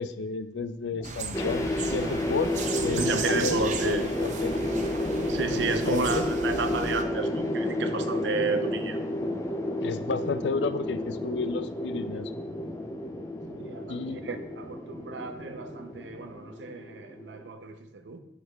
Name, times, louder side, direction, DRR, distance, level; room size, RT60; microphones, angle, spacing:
voice 1, 0.0-2.5 2.8-4.6 5.7-6.2 9.8-12.3 13.9-14.4, left 4 dB, 80° left, 12 dB, 0.4 m, -32 dB
sound 1, 0.8-16.3, equal, ahead, 0.9 m, -49 dB
sound 2, 1.0-7.0, right 5 dB, 45° right, 0.6 m, -36 dB
sound 3, 1.3-17.5, left 1 dB, 15° left, 0.4 m, -31 dB
voice 2, 3.0-4.0 5.3-9.0 13.5-18.2, right 4 dB, 90° right, 8 dB, 0.6 m, -32 dB
12.5 x 4.5 x 2.3 m, 0.87 s
head